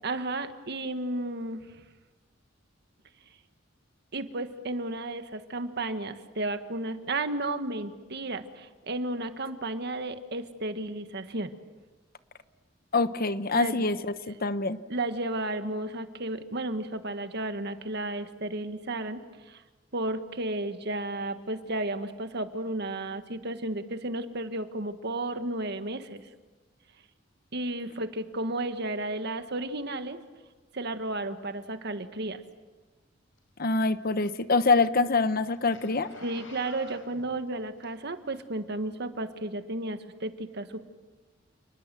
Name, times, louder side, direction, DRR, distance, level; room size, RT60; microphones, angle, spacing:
voice 1, 0.0-1.7 4.1-11.5 13.5-13.9 14.9-19.2 19.5-19.6 19.9-26.2 27.5-30.2 30.7-32.4 36.2-40.8, right 2 dB, 60° right, 8 dB, 1.6 m, -33 dB
voice 2, 12.9-14.8 33.6-36.1, left 3 dB, 50° left, 12 dB, 1.0 m, -25 dB
Zipper (clothing), 33.4-38.3 38.9-39.0, left 2 dB, 85° left, 5.7 m, -51 dB
29.5 x 20.5 x 7.7 m, 1.3 s
head